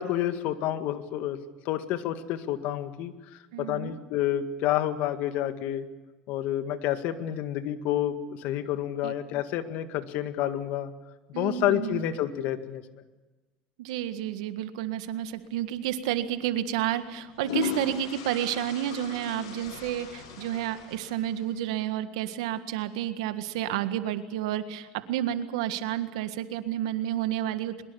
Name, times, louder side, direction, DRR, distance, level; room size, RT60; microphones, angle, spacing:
voice 1, 0.0-1.4 1.7-5.9 6.3-10.9 11.4-12.8, left 12 dB, 65° left, 9 dB, 1.9 m, -29 dB
voice 2, 3.5-4.0 9.0-9.1 11.3-12.1 13.8-27.9, right 11 dB, 80° right, 10 dB, 1.7 m, -31 dB
sound 1, 15.7-15.9 17.0-21.6, left 7 dB, 90° left, 5.0 m, -37 dB
23.0 x 22.0 x 7.1 m, 1.2 s
supercardioid pair, 95°, 3 cm